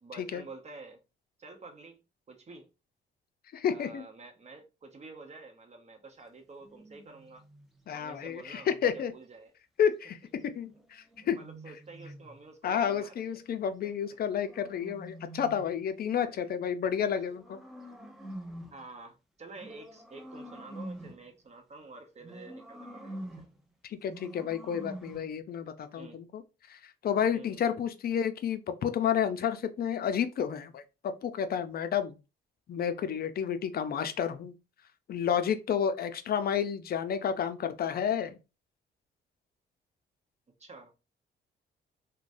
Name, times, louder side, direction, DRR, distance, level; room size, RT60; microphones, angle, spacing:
voice 1, 0.0-1.0 1.4-2.0 2.3-2.7 3.7-7.4 7.9-9.5 11.3-13.4 13.8-13.9 16.1-16.5 18.7-23.3 26.0-26.2 27.3-27.7 40.6-41.0, right 3 dB, 35° right, 0.8 m, -49 dB
voice 2, 3.5-4.0 7.9-9.1 9.8-11.4 12.6-17.6 23.8-26.4 26.7-32.2 32.7-34.5 35.1-38.4, left 8 dB, 50° left, 0.5 m, -31 dB
sound 1, 6.6-9.0 10.6-12.4 13.8-15.8 16.8-18.9 19.5-21.3 22.2-23.6 24.1-25.3, right 1 dB, ahead, 0.7 m, -47 dB
3.2 x 2.2 x 2.5 m
cardioid pair, 90°, 20 cm